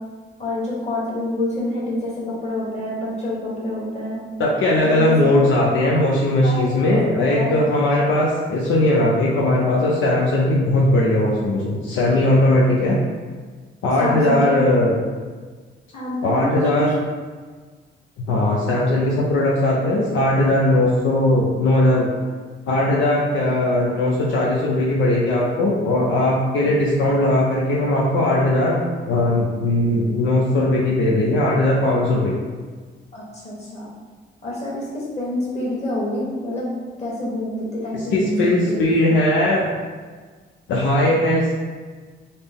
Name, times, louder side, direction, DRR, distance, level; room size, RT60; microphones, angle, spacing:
voice 1, 0.4-4.2 4.8-5.7 6.4-7.5 14.0-14.8 15.9-16.9 33.1-33.9 34.4-36.7 37.0-38.9, left 1 dB, 35° left, -6 dB, 1.4 m, -27 dB
voice 2, 4.4-13.0 13.8-15.0 16.2-16.9 18.3-22.1 22.7-28.8 29.0-32.3 38.1-39.7 40.7-41.6, left 1 dB, 75° left, -4 dB, 0.6 m, -19 dB
4.0 x 2.0 x 3.5 m, 1.5 s
cardioid pair, 90°, 20 cm